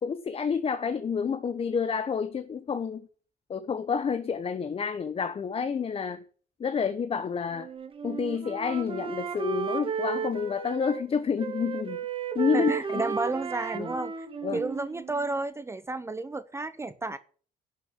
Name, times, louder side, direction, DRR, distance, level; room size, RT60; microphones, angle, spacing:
voice 1, 0.0-3.1 3.5-6.2 6.6-7.7 8.0-12.0 12.3-13.1 13.7-13.9 14.4-14.6, left 6 dB, 35° left, 1.0 m, -29 dB
Wind instrument woodwind instrument, 7.5-11.1 11.4-15.4, right 7 dB, 30° right, 1.8 m, -34 dB
voice 2, 12.5-14.3 14.5-17.2, right 3 dB, 15° right, 0.7 m, -32 dB
11.5 x 6.4 x 9.3 m
cardioid pair, 110°, 17 cm